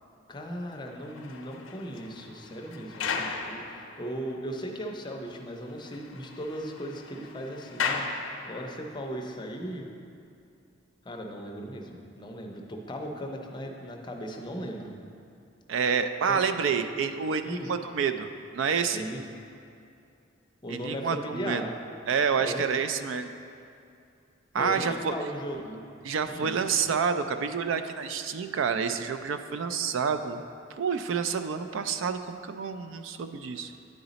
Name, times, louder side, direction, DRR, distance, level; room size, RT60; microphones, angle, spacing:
voice 1, 0.3-8.0 8.4-9.9 11.0-14.9 16.3-16.4 17.4-17.7 18.9-19.2 20.6-21.7 22.4-22.6 24.6-25.8 26.2-26.6 33.6-33.7, equal, 25° left, 2 dB, 0.5 m, -37 dB
sound 1, 0.9-4.4 4.9-5.0 5.3-5.4 5.7-9.0, left 5 dB, 85° left, 0.5 m, -36 dB
voice 2, 15.7-18.3 18.5-19.1 20.7-21.7 22.1-23.3 24.5-25.1 26.0-30.4 30.8-33.7, right 6 dB, 75° right, 9 dB, 0.3 m, -28 dB
9.6 x 4.0 x 4.0 m, 2.5 s
head